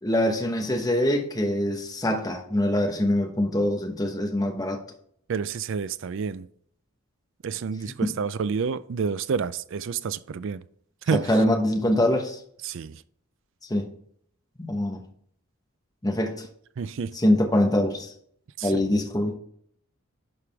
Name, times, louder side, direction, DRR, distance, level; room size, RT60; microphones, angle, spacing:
voice 1, 0.0-4.8 11.1-12.4 13.7-13.9 14.6-15.0 16.0-16.4 17.1-18.1 18.6-19.3, left 1 dB, 15° left, 1.1 m, -24 dB
voice 2, 5.3-6.5 7.4-10.6 11.1-11.3 12.6-13.0 16.8-17.1 18.6-18.8, right 5 dB, 55° right, 0.4 m, -29 dB
11.0 x 4.9 x 3.5 m
head